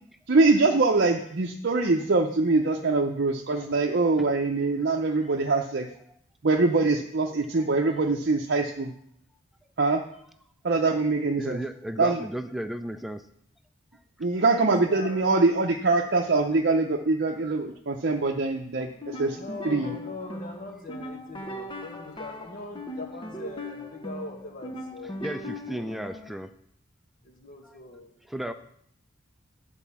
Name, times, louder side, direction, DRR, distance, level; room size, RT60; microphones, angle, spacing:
voice 1, 0.3-5.9 6.4-8.9 9.8-10.0 10.6-11.6 12.0-12.3 14.2-19.4 19.6-19.9, right 3 dB, 55° right, 1 dB, 0.7 m, -23 dB
voice 2, 3.6-4.3 7.6-7.7 11.4-13.3 25.2-26.5 27.6-27.8 28.2-28.5, right 1 dB, ahead, 8 dB, 0.4 m, -35 dB
voice 3, 14.5-15.3 19.3-25.4 25.7-25.9 27.2-28.1, left 2 dB, 45° left, 2 dB, 1.7 m, -41 dB
sound 1, 18.9-26.4, left 1 dB, 25° left, 0.8 m, -39 dB
10.5 x 4.4 x 7.1 m, 0.69 s
head